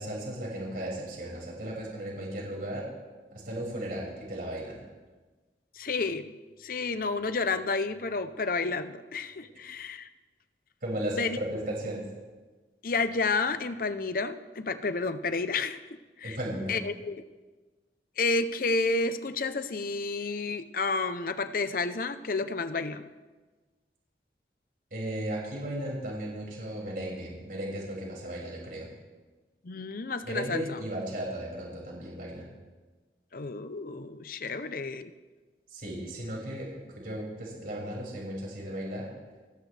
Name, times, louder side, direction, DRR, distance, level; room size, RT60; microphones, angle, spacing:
voice 1, 0.0-2.9 3.3-4.8 10.8-12.1 16.2-16.8 24.9-28.9 30.3-32.5 35.7-39.1, right 1 dB, 55° right, -4 dB, 6.1 m, -35 dB
voice 2, 5.7-6.3 6.6-10.1 11.2-11.4 12.8-15.8 16.2-16.4 16.7-17.2 18.2-23.1 29.6-30.8 33.3-35.1, left 3 dB, 50° left, 11 dB, 0.7 m, -30 dB
29.5 x 13.0 x 3.4 m, 1.3 s
head